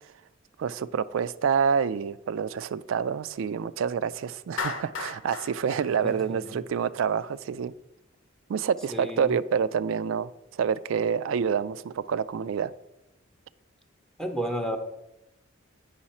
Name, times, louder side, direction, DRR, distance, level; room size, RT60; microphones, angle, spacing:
voice 1, 0.6-7.7 8.5-12.7, right 7 dB, 70° right, 0.3 m, -27 dB
Clapping, 4.6-6.9, left 5 dB, 70° left, 0.9 m, -35 dB
voice 2, 6.0-6.6 8.9-9.4 14.2-14.8, right 1 dB, 5° left, 0.6 m, -32 dB
8.6 x 5.6 x 4.2 m
head